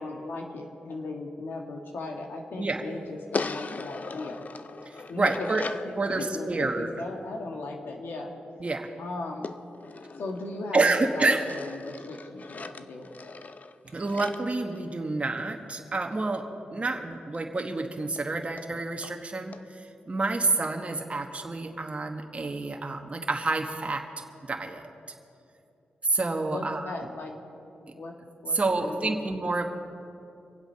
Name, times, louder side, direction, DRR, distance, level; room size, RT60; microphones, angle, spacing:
voice 1, 0.0-4.4 5.1-5.5 5.8-8.3 9.0-9.6 10.2-13.2 16.7-16.8 26.4-27.3 27.9-28.1 28.4-29.3, left 2 dB, 80° left, 2 dB, 1.8 m, -37 dB
sound 1, 3.3-5.9 9.4-10.8 11.3-15.4 17.3-17.4 17.7-17.8 18.2-18.3 18.6-18.7 19.0-19.2 19.5-19.6, left 4 dB, 50° left, 0.6 m, -39 dB
voice 2, 4.8-5.6 6.0-6.9 8.6-8.9 10.7-11.4 13.9-24.0 24.4-24.8 26.0-26.9 28.5-29.7, right 3 dB, 35° right, 3 dB, 1.3 m, -28 dB
24.0 x 8.0 x 5.7 m, 2.6 s
cardioid pair, 60°, 4 cm